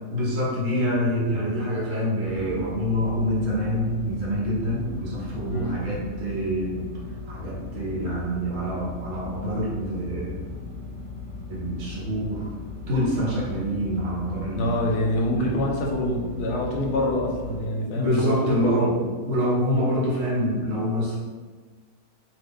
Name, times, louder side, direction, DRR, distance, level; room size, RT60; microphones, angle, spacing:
voice 1, 0.1-6.9 7.3-10.5 11.5-12.5 12.9-14.7 15.4-15.6 17.9-21.2, equal, 60° right, -5 dB, 1.0 m, -26 dB
sound 1, 2.2-17.7, left 4 dB, 15° left, 1.0 m, -38 dB
voice 2, 14.6-18.7, left 1 dB, 75° left, 0 dB, 1.1 m, -25 dB
2.7 x 2.3 x 3.5 m, 1.4 s
omnidirectional pair, 1.7 m